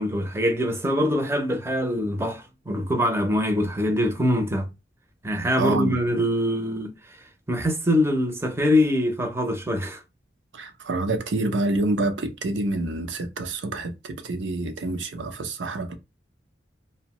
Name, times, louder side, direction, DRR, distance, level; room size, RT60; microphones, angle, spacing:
voice 1, 0.0-4.7 5.2-6.9 7.5-10.0, equal, 15° right, 0.5 m, -23 dB
voice 2, 5.6-6.0 10.5-15.9, right 2 dB, 90° right, 0.6 m, -27 dB
2.6 x 2.1 x 2.8 m
head